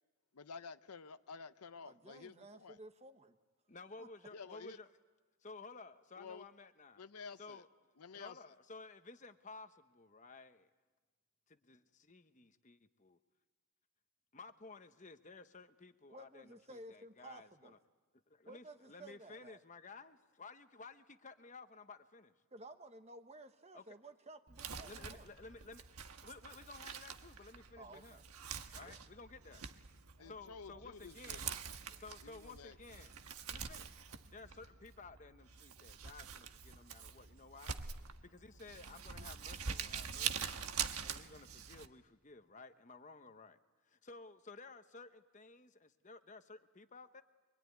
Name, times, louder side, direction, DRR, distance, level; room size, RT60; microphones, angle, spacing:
voice 1, 0.3-2.8 4.3-4.8 6.2-6.4 7.0-7.6 8.0-8.4 30.2-31.6 32.2-32.8, left 5 dB, 90° left, 0.8 m, -51 dB
voice 2, 1.8-3.4 4.0-4.1 16.1-17.7 18.5-19.6 22.5-25.3 27.8-28.2 28.8-29.0 30.2-30.4 30.7-30.8, right 2 dB, 30° right, 1.1 m, -55 dB
voice 3, 3.7-4.9 5.4-7.0 7.4-7.7 8.1-10.7 11.5-13.2 14.3-17.8 18.3-22.3 23.7-24.0 24.8-25.8 26.2-28.2 28.7-29.7 30.2-31.5 31.9-33.2 33.5-33.9 34.3-37.7 38.2-40.7 41.0-43.6 43.9-47.2, left 3 dB, 35° left, 1.0 m, -54 dB
Crumpling crinkling, 24.5-41.9, right 7 dB, 85° right, 1.3 m, -45 dB
24.5 x 24.0 x 9.5 m
head